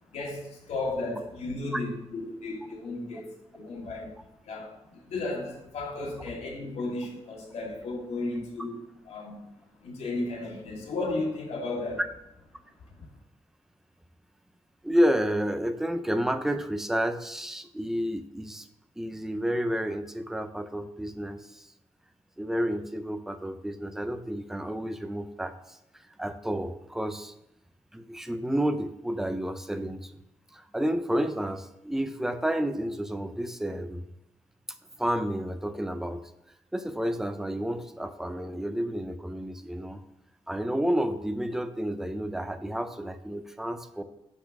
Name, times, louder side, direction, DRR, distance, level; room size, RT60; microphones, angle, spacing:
voice 1, 0.1-4.2 4.4-9.4 9.8-12.0 12.9-13.1, left 2 dB, 85° left, -2 dB, 2.5 m, -34 dB
voice 2, 14.8-18.7 19.0-21.7 22.4-25.8 26.2-27.3 27.9-30.1 30.5-34.0 35.0-36.3 36.7-40.0 40.5-44.0, equal, 5° right, 9 dB, 0.5 m, -30 dB
10.5 x 4.4 x 5.9 m, 0.85 s
wide cardioid pair, 180°, 11 cm